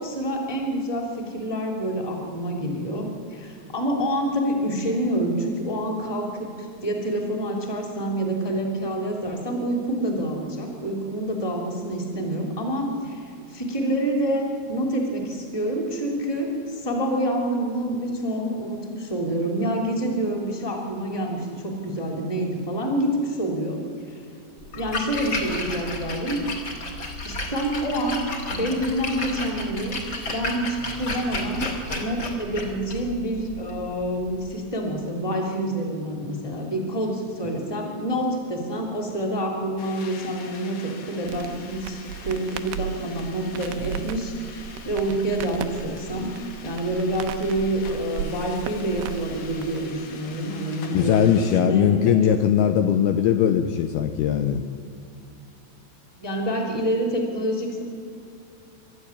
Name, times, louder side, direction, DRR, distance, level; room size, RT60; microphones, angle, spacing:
voice 1, 0.0-24.2 24.7-26.4 27.2-28.2 28.5-30.0 30.2-31.7 32.0-51.3 51.6-52.1 56.2-57.8, right 1 dB, 5° left, 2 dB, 2.3 m, -27 dB
Splash splatter, 24.6-34.5, left 2 dB, 35° left, 2.7 m, -32 dB
sound 1, 39.8-51.6, left 5 dB, 55° left, 2.8 m, -44 dB
Crackle, 41.2-49.9, right 9 dB, 80° right, 2.6 m, -36 dB
voice 2, 50.9-54.6, left 9 dB, 75° left, 7 dB, 2.5 m, -20 dB
26.0 x 13.0 x 9.9 m, 2.5 s
omnidirectional pair, 5.1 m